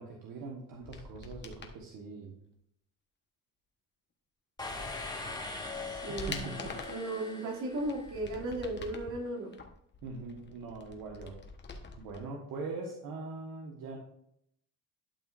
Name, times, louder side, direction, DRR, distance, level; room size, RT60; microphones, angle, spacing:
voice 1, 0.0-2.4 6.1-6.8 10.0-11.4 12.0-14.0, right 3 dB, 80° right, -1 dB, 1.4 m, -42 dB
sound 1, 0.7-1.8 4.8-4.9 5.4-7.1 7.6-9.1 9.5-12.2 12.5-12.6, left 4 dB, 30° left, 1.1 m, -45 dB
sound 2, 4.6-8.4, left 3 dB, 10° left, 1.5 m, -41 dB
voice 2, 5.9-9.5, right 2 dB, 60° right, -3 dB, 2.7 m, -36 dB
12.0 x 6.0 x 2.6 m, 0.72 s
cardioid pair, 135°, 34 cm